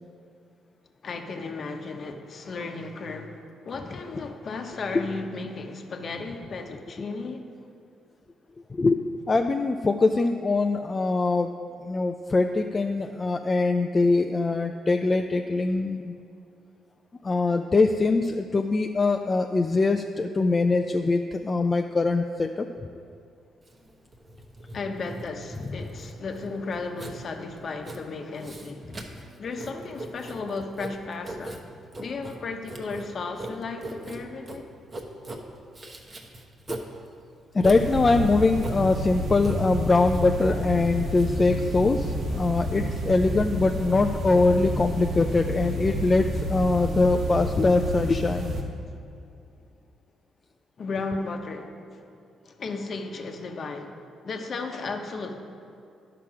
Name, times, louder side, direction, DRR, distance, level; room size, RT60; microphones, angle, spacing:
voice 1, 1.0-7.5 24.7-29.0 29.4-31.6 32.0-34.7 50.8-52.1 52.4-55.4, left 3 dB, 50° left, 5 dB, 0.9 m, -35 dB
voice 2, 8.7-9.0 9.3-11.5 11.8-16.1 17.2-22.7 37.5-48.5, left 3 dB, 30° left, 5 dB, 0.4 m, -23 dB
Writing, 23.6-42.8, right 1 dB, 35° right, 1.0 m, -41 dB
sound 1, 37.6-48.6, equal, 60° right, 1.3 m, -30 dB
11.0 x 5.8 x 4.8 m, 2.5 s
cardioid pair, 90°, 0 cm